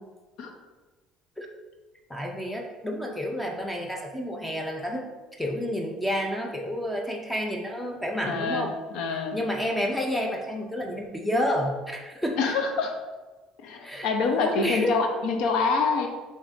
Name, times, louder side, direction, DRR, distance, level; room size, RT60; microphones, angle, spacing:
voice 1, 2.1-5.1 5.4-8.7 9.3-12.4 13.8-14.1 14.4-15.0, equal, 5° left, 1 dB, 0.5 m, -29 dB
voice 2, 8.2-9.3 12.4-12.9 13.6-16.1, left 4 dB, 70° left, 4 dB, 0.6 m, -26 dB
6.8 x 2.7 x 2.5 m, 1.2 s
cardioid pair, 140°, 0 cm